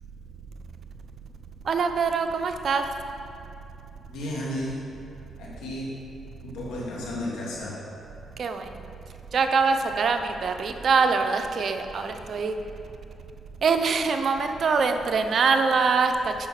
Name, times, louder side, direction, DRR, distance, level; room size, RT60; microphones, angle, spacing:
voice 1, 1.7-2.8 8.4-8.6 9.3-12.5 13.6-16.3, right 5 dB, 55° right, 6 dB, 0.7 m, -23 dB
voice 2, 4.1-4.8 5.4-6.0 6.4-7.8, left 1 dB, 85° left, -5 dB, 2.4 m, -33 dB
8.9 x 5.8 x 6.5 m, 2.8 s
cardioid pair, 80°, 0 cm